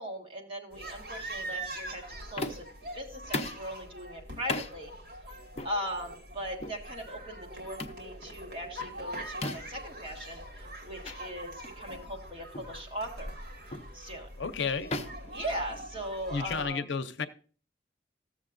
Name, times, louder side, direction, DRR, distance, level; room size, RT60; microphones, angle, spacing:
voice 1, 0.0-2.0 2.3-2.7 2.9-4.9 5.6-13.3 13.9-14.3 15.3-16.9, equal, 30° right, 1.5 m, -39 dB
sound 1, 0.7-16.7, right 1 dB, 65° right, 2.1 m, -43 dB
sound 2, 2.4-2.8 3.3-3.7 4.5-4.7 5.6-5.8 6.6-6.8 7.8-8.0 9.4-9.8 11.0-11.2 11.6-11.8 12.5-12.8 13.7-14.0 14.9-16.1, left 2 dB, 35° left, 0.6 m, -36 dB
voice 2, 14.4-14.9 16.3-17.3, left 5 dB, 80° left, 0.6 m, -32 dB
14.0 x 7.3 x 2.5 m
head